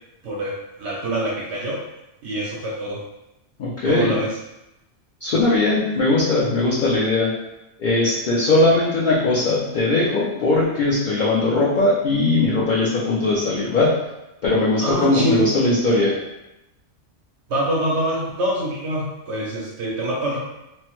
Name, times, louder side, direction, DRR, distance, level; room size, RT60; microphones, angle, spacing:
voice 1, 0.2-1.8 2.2-3.0 3.9-4.4 10.3-10.4 14.8-15.5 17.5-20.4, right 1 dB, 75° right, -5 dB, 0.9 m, -25 dB
voice 2, 3.6-4.1 5.2-7.3 7.8-14.0 14.4-16.2, left 2 dB, 55° left, -6 dB, 0.6 m, -19 dB
3.0 x 2.0 x 2.9 m, 0.93 s
omnidirectional pair, 1.2 m